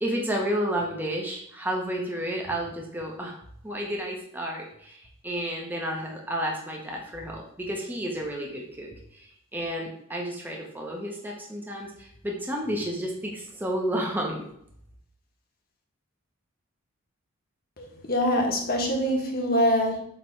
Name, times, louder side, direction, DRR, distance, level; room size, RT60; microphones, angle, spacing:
voice 1, 0.0-3.4 3.6-9.3 9.5-14.4, equal, 10° right, -1 dB, 1.0 m, -31 dB
voice 2, 17.8-20.0, equal, 45° left, 1 dB, 1.4 m, -24 dB
7.8 x 3.4 x 4.6 m, 0.70 s
head